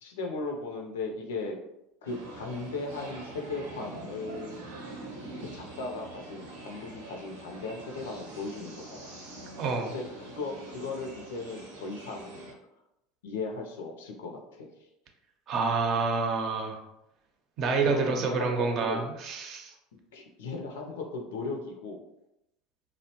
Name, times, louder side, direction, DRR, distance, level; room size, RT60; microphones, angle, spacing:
voice 1, 0.0-1.6 2.0-4.6 5.5-9.1 9.9-12.4 13.2-14.7 17.8-19.1 20.1-22.0, left 3 dB, 75° left, 2 dB, 0.5 m, -37 dB
sound 1, 2.1-12.5, right 2 dB, 85° right, 0.7 m, -44 dB
voice 2, 9.6-9.9 15.5-16.8 17.6-19.7, right 4 dB, 50° right, 2 dB, 0.6 m, -28 dB
2.7 x 2.0 x 2.8 m, 0.87 s
hypercardioid pair, 80°, 0 cm